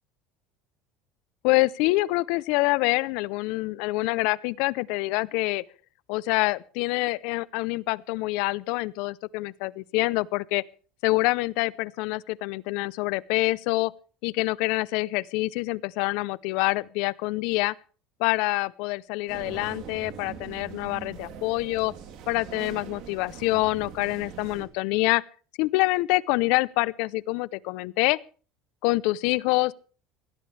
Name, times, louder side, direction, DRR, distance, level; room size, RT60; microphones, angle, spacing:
voice 1, 1.4-5.6 6.1-10.6 11.0-13.9 14.2-17.7 18.2-21.9 22.3-25.2 25.6-28.2 28.8-29.7, left 22 dB, 65° left, 0.6 m, -26 dB
sound 1, 19.3-24.7, right 7 dB, 50° right, 3.3 m, -42 dB
20.5 x 17.0 x 3.3 m
cardioid pair, 165°, 0 cm